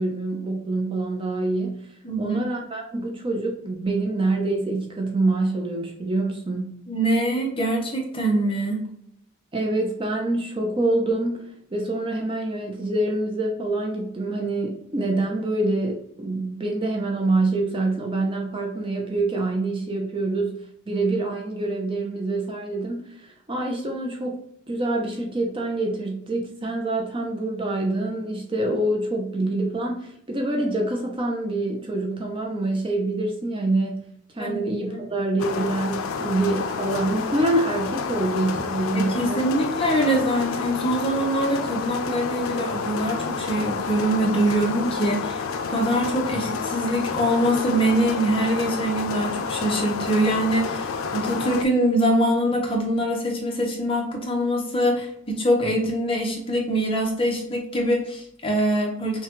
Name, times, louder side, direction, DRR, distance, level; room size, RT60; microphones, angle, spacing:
voice 1, 0.0-1.9 2.2-6.8 9.5-24.4 24.7-34.1 34.3-39.5, right 2 dB, 25° right, 1 dB, 0.6 m, -26 dB
voice 2, 2.0-2.4 6.9-8.8 34.4-35.0 38.9-45.4 45.7-59.2, right 1 dB, 25° left, -1 dB, 0.9 m, -24 dB
sound 1, 35.4-51.6, left 5 dB, 90° left, 0.4 m, -29 dB
5.7 x 2.3 x 3.0 m, 0.70 s
head